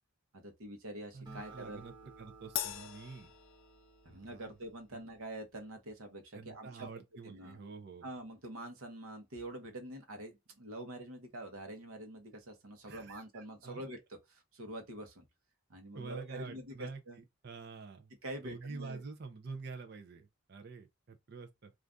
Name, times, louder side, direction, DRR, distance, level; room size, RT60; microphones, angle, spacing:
voice 1, 0.3-1.8 4.0-6.9 7.2-7.6 8.0-15.2 15.7-17.2 18.2-19.0, right 1 dB, 75° right, 0.9 m, -46 dB
voice 2, 1.1-3.3 4.1-4.5 4.9-5.0 6.3-8.0 12.9-13.8 15.9-18.1 18.4-21.7, right 4 dB, 50° right, 0.5 m, -47 dB
Acoustic guitar, 1.3-4.8, right 3 dB, 20° right, 1.1 m, -56 dB
Crash cymbal, 2.6-4.2, left 12 dB, 60° left, 0.3 m, -41 dB
2.5 x 2.4 x 3.3 m
head